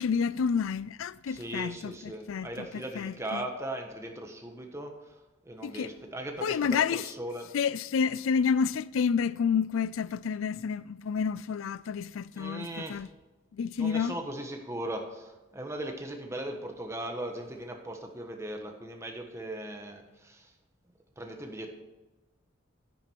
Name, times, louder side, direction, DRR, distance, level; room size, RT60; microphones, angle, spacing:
voice 1, 0.0-3.5 5.6-5.9 6.4-7.1 7.5-13.1 13.5-14.2, left 6 dB, 85° left, 0.4 m, -29 dB
voice 2, 1.3-4.9 5.4-7.5 12.3-13.0 13.8-20.5 21.2-21.7, right 1 dB, 15° right, 1.3 m, -38 dB
10.0 x 9.7 x 4.6 m
head